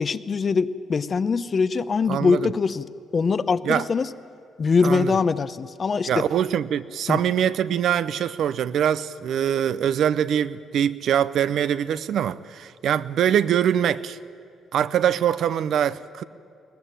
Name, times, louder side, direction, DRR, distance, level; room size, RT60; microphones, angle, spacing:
voice 1, 0.0-2.8 3.1-4.1 4.6-6.2 7.1-7.2, left 5 dB, 40° left, 0.8 m, -22 dB
voice 2, 2.1-2.5 3.6-3.9 4.8-5.2 6.1-14.2 14.7-16.2, right 9 dB, 70° right, 0.7 m, -23 dB
22.5 x 18.5 x 9.0 m
cardioid pair, 90°, 0 cm